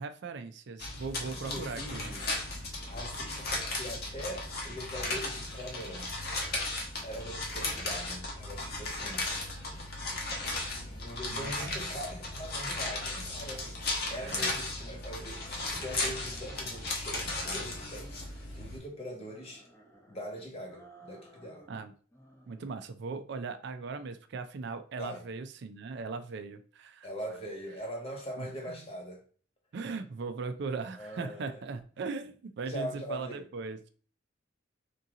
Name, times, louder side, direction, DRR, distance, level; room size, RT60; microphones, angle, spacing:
voice 1, 0.0-2.1 11.3-11.7 14.2-14.6 21.7-21.9 22.5-27.1 28.4-28.9 29.7-33.9, right 4 dB, 60° right, 0.4 m, -39 dB
sound 1, 0.8-18.8, left 2 dB, 55° left, 1.1 m, -36 dB
voice 2, 1.2-2.3 2.6-6.1 7.0-9.2 10.8-19.7 20.1-21.7 25.0-25.2 27.0-29.2 31.0-31.6 32.7-33.5, equal, 30° left, 1.2 m, -42 dB
sound 2, 15.2-17.0 17.3-18.8 19.2-20.3 20.7-21.8 22.1-22.9, right 1 dB, 15° left, 0.8 m, -56 dB
3.6 x 2.8 x 3.8 m
head